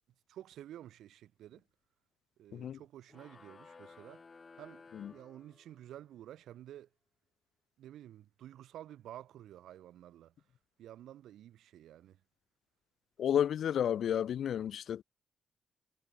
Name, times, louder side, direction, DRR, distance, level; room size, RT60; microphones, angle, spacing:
voice 1, 0.3-1.6 2.4-4.2 4.6-6.9 7.8-10.3 10.8-12.2, right 12 dB, 85° right, 4.8 m, -51 dB
sound 1, 3.1-6.0, left 4 dB, 25° left, 2.3 m, -56 dB
voice 2, 13.2-15.0, left 9 dB, 55° left, 0.6 m, -31 dB
wide cardioid pair, 180°, 0 cm